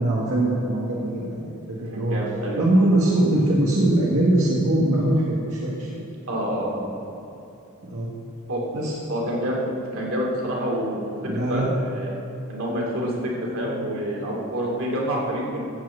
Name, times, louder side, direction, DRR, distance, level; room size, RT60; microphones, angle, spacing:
voice 1, 0.0-2.2 2.5-6.1 7.8-8.1 8.7-8.9 11.2-11.7, right 1 dB, 85° right, -6 dB, 1.9 m, -22 dB
voice 2, 1.9-2.6 6.3-6.9 8.5-8.6 9.1-9.6 9.9-12.1 12.5-15.6, equal, 70° right, -3 dB, 2.8 m, -27 dB
14.5 x 5.5 x 8.3 m, 2.9 s
head